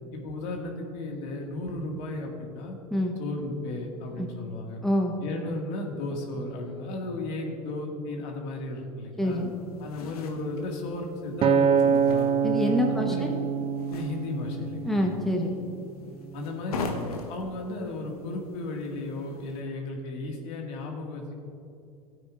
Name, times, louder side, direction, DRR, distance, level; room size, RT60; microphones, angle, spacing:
voice 1, 0.1-2.8 3.2-4.8 5.2-9.4 9.8-12.3 12.9-13.3 13.9-15.1 16.3-16.9 17.3-21.3, left 2 dB, 60° left, 1 dB, 1.9 m, -34 dB
voice 2, 4.8-5.1 9.2-9.5 12.4-13.3 14.8-15.6, left 1 dB, ahead, 1 dB, 1.0 m, -26 dB
sound 1, 9.2-19.6, left 3 dB, 85° left, 1.2 m, -42 dB
Acoustic guitar, 11.4-15.8 16.4-16.6, right 6 dB, 30° right, 0.4 m, -26 dB
16.0 x 8.9 x 2.5 m, 2.4 s
hypercardioid pair, 90°, 19 cm